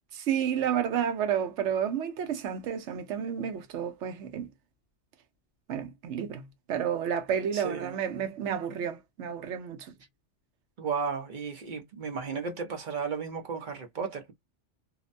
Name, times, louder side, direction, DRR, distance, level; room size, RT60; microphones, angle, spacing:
voice 1, 0.2-4.5 5.7-6.4 6.7-9.9, right 8 dB, 80° right, 0.9 m, -31 dB
voice 2, 7.5-7.9 10.8-14.3, right 5 dB, 50° right, 0.8 m, -34 dB
2.6 x 2.1 x 2.5 m
omnidirectional pair, 1.2 m